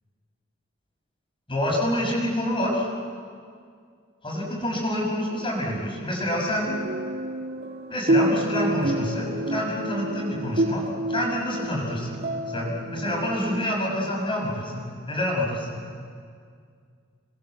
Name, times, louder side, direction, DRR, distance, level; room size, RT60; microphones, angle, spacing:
voice 1, 1.5-2.9 4.2-6.7 7.9-10.8 11.1-12.2 12.5-15.8, left 1 dB, 25° left, -3 dB, 6.2 m, -27 dB
sound 1, 6.7-13.7, right 1 dB, 55° right, 1.7 m, -28 dB
29.0 x 22.0 x 7.9 m, 2.2 s
head